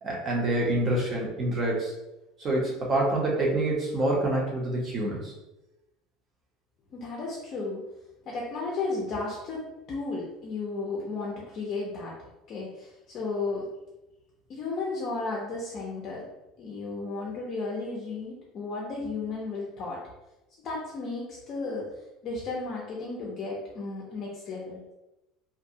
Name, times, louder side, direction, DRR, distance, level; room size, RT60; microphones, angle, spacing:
voice 1, 0.0-1.9 2.4-5.3, right 1 dB, 30° right, -3 dB, 0.7 m, -27 dB
voice 2, 6.9-7.8 8.3-9.6 9.9-12.1 12.5-13.7 14.5-16.2 16.6-20.0 20.6-21.9 22.2-24.8, left 3 dB, 40° left, -4 dB, 0.5 m, -34 dB
2.5 x 2.1 x 2.7 m, 0.96 s
cardioid pair, 150°, 0 cm